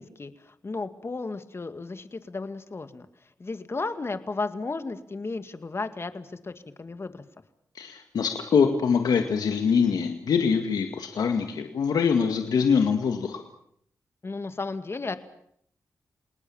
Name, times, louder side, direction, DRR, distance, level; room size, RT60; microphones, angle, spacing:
voice 1, 0.0-3.1 3.4-6.5 6.8-7.2 14.2-15.2, left 3 dB, 40° left, 9 dB, 2.2 m, -34 dB
voice 2, 7.8-13.4, left 6 dB, 85° left, 5 dB, 2.0 m, -24 dB
29.5 x 19.5 x 7.3 m, 0.68 s
cardioid pair, 65°, 7 cm